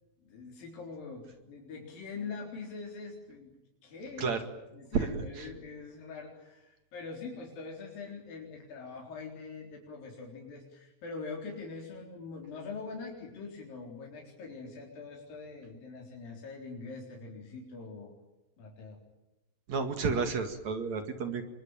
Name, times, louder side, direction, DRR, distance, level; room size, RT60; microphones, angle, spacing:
voice 1, 0.2-3.5 3.8-4.3 4.7-18.2 18.6-19.0, left 4 dB, 80° left, -1 dB, 5.7 m, -43 dB
voice 2, 4.9-5.5 19.7-21.4, right 5 dB, 55° right, 7 dB, 3.1 m, -31 dB
27.5 x 23.5 x 9.0 m, 0.97 s
omnidirectional pair, 4.0 m